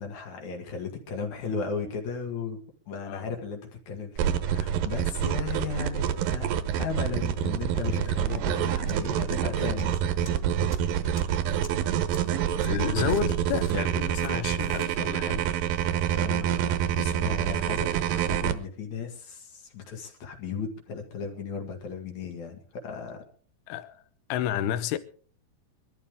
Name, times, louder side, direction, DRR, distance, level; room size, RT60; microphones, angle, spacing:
voice 1, 0.0-2.6 2.9-3.6 3.9-6.5 6.8-10.0 16.1-23.2, left 5 dB, 50° left, 3.1 m, -35 dB
sound 1, 4.2-18.5, right 9 dB, 70° right, 2.2 m, -27 dB
sound 2, 8.9-9.0 9.3-9.8 10.2-10.3 10.7-10.8 11.1-11.2 11.6-11.7 12.1-12.2 12.6-12.7 13.1-13.7 14.1-14.3 14.6-14.9, equal, 15° left, 0.5 m, -47 dB
voice 2, 12.6-15.5 23.7-24.0 24.3-25.0, left 10 dB, 75° left, 2.7 m, -30 dB
23.5 x 13.0 x 3.6 m
omnidirectional pair, 4.9 m